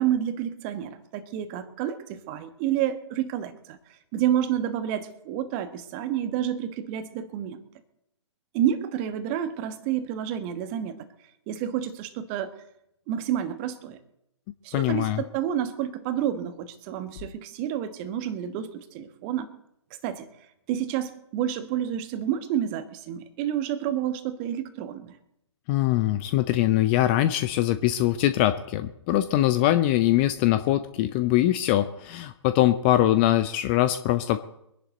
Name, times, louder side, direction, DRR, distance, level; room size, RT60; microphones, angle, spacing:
voice 1, 0.0-3.8 4.1-7.6 8.5-11.0 11.5-12.5 13.1-14.0 14.6-19.5 20.0-20.3 20.7-25.1, right 10 dB, 25° right, 10 dB, 1.3 m, -29 dB
voice 2, 14.7-15.2 25.7-34.4, left 14 dB, 20° left, 11 dB, 0.6 m, -22 dB
23.5 x 11.0 x 4.1 m, 0.79 s
figure-of-eight pair, 130°, 16 cm